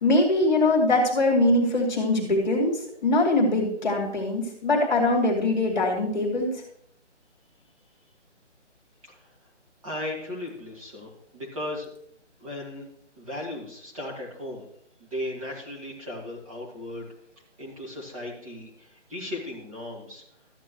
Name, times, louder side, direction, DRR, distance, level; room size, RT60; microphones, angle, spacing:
voice 1, 0.0-6.5, left 2 dB, 40° left, 0 dB, 2.2 m, -22 dB
voice 2, 9.8-11.9 12.4-12.9 13.2-14.6 15.0-17.1 17.6-20.2, left 1 dB, 30° right, -3 dB, 2.0 m, -36 dB
13.5 x 9.1 x 3.1 m, 0.70 s
hypercardioid pair, 175°, 36 cm